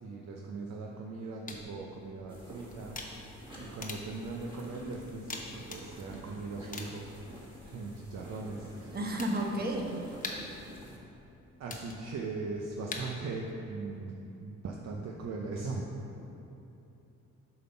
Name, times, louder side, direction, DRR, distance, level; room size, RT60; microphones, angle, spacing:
voice 1, 0.0-3.0 3.6-9.0 11.6-14.1 14.4-15.9, right 3 dB, 60° right, -1 dB, 0.7 m, -39 dB
sound 1, 1.5-13.5, left 3 dB, 25° left, 0.9 m, -47 dB
sound 2, 2.3-11.0, equal, 15° right, 1.5 m, -49 dB
voice 2, 8.9-10.1 16.2-16.3, right 1 dB, 30° right, 1 dB, 1.0 m, -33 dB
7.7 x 3.8 x 5.7 m, 2.9 s
cardioid pair, 90°, 30 cm